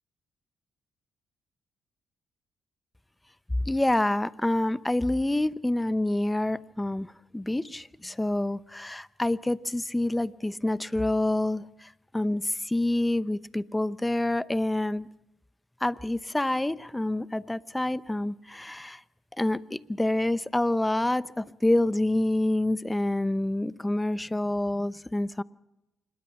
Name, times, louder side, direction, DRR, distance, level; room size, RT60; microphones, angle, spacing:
voice 1, 3.7-7.1 7.3-15.1 15.8-19.0 19.4-25.4, left 1 dB, 10° left, 16 dB, 0.8 m, -27 dB
26.0 x 21.0 x 5.9 m, 0.94 s
cardioid pair, 90°, 0 cm